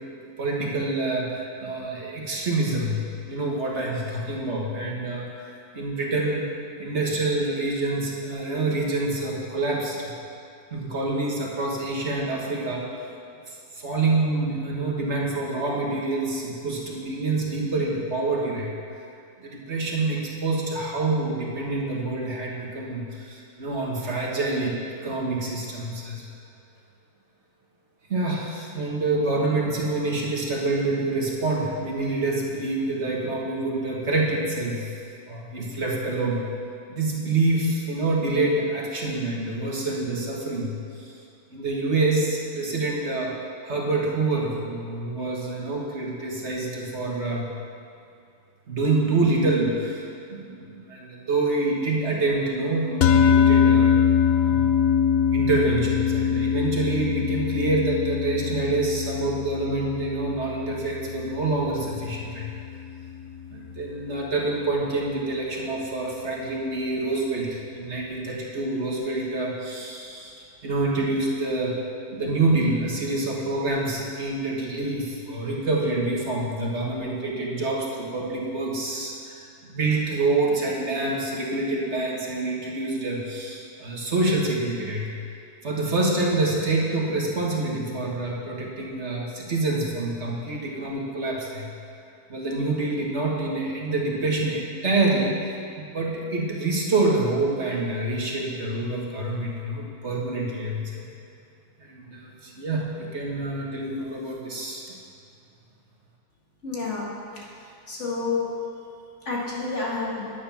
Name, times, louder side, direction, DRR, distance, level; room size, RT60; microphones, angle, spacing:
voice 1, 0.4-6.5 6.8-10.2 10.7-13.1 13.5-18.7 19.4-24.8 25.0-26.2 28.1-34.9 35.3-36.5 36.9-41.2 41.5-43.4 43.6-47.5 48.7-53.9 54.4-54.7 55.3-62.5 63.5-71.8 72.1-85.1 85.6-91.7 92.3-101.1 101.8-104.8, right 2 dB, 55° right, -2 dB, 1.7 m, -27 dB
sound 1, 53.0-63.5, left 7 dB, 80° left, 1.0 m, -23 dB
voice 2, 106.6-107.1 107.9-108.5 109.3-110.3, left 4 dB, 55° left, -5 dB, 2.3 m, -29 dB
9.5 x 9.4 x 5.8 m, 2.4 s
omnidirectional pair, 1.5 m